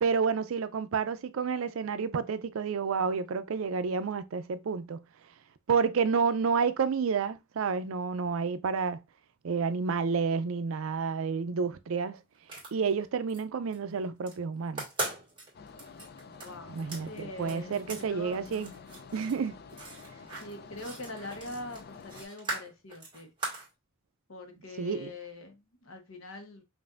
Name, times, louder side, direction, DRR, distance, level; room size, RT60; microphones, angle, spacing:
voice 1, 0.0-5.0 5.7-9.0 9.4-12.2 12.7-14.8 16.7-18.7 19.1-19.6 24.8-25.1, right 5 dB, 80° right, 0.4 m, -30 dB
sound 1, 12.3-13.4 13.7-14.3 14.7-18.1 18.3-23.7, right 2 dB, 25° right, 1.8 m, -40 dB
sound 2, 15.5-22.3, left 5 dB, 50° left, 0.4 m, -49 dB
voice 2, 16.4-16.8 17.1-18.4 20.4-23.3 24.3-26.6, left 2 dB, 80° left, 1.1 m, -43 dB
5.3 x 2.6 x 2.4 m
head